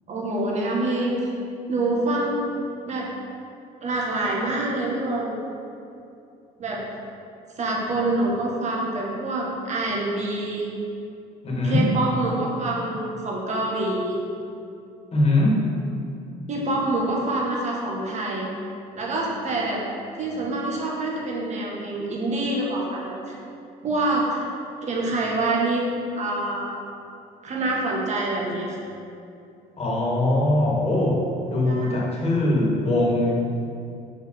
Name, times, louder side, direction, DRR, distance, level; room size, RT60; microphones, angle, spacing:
voice 1, 0.1-1.3 1.7-2.4 2.8-3.1 3.8-5.4 6.6-6.8 7.6-10.7 11.6-14.2 16.5-18.5 18.9-19.8 20.2-23.4 23.8-24.5 24.9-25.9 26.2-26.7 27.4-28.8 31.7-32.0, right 2 dB, 45° right, -3 dB, 1.8 m, -26 dB
voice 2, 11.4-12.0 15.1-15.7 29.8-33.3, left 1 dB, 35° left, -3 dB, 2.0 m, -21 dB
6.5 x 5.2 x 6.5 m, 2.6 s
cardioid pair, 110°, 17 cm